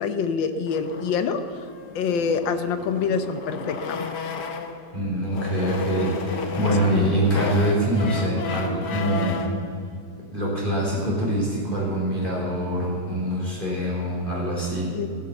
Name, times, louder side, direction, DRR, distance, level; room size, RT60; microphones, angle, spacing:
voice 1, 0.0-1.4 1.9-4.1 6.9-7.2 14.9-15.2, left 6 dB, 85° left, 9 dB, 1.7 m, -26 dB
sound 1, 0.7-4.9 5.3-9.6, left 3 dB, 65° left, 1.6 m, -32 dB
voice 2, 4.9-9.4 10.2-15.0, right 1 dB, 25° left, -6 dB, 4.2 m, -24 dB
15.5 x 9.9 x 7.1 m, 2.4 s
omnidirectional pair, 2.0 m